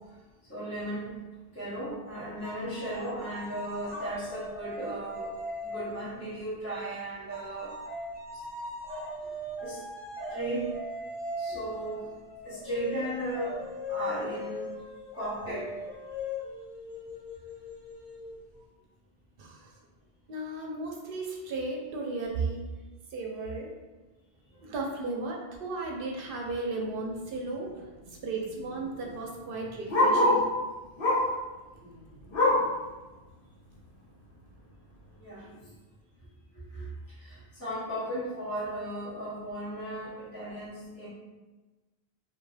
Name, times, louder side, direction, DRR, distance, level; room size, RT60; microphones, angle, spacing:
voice 1, 0.5-1.1 1.5-5.3 5.6-7.7 9.6-9.8 10.3-10.7 11.4-12.1 12.4-14.7 15.1-15.7 35.2-35.7 36.5-36.9 37.2-41.1, right 1 dB, 15° left, -11 dB, 0.8 m, -36 dB
sound 1, 2.4-6.3 7.3-18.6, left 1 dB, 85° left, 1.1 m, -39 dB
voice 2, 19.4-19.7 20.3-22.7 23.1-23.7 24.6-27.7 28.1-30.5, right 3 dB, 65° right, 0 dB, 0.7 m, -35 dB
Bark, 26.8-27.0 27.4-27.5 27.7-30.5 31.0-31.4 31.8-32.8 33.2-33.3 33.7-33.8 34.5-34.6, left 1 dB, 65° left, 1.1 m, -26 dB
2.5 x 2.2 x 3.1 m, 1.2 s
omnidirectional pair, 1.0 m